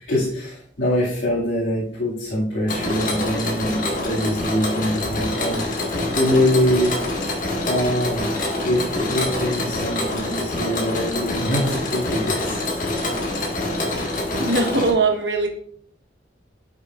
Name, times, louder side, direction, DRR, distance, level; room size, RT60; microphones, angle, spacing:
voice 1, 0.1-5.7 6.1-6.9 7.6-8.3 8.6-12.6, equal, 85° left, -9 dB, 2.2 m, -23 dB
Mechanisms, 2.7-14.9, left 2 dB, 45° left, 1.7 m, -25 dB
voice 2, 14.4-15.5, right 3 dB, 70° right, 3 dB, 1.3 m, -20 dB
9.9 x 6.3 x 2.5 m, 0.62 s
head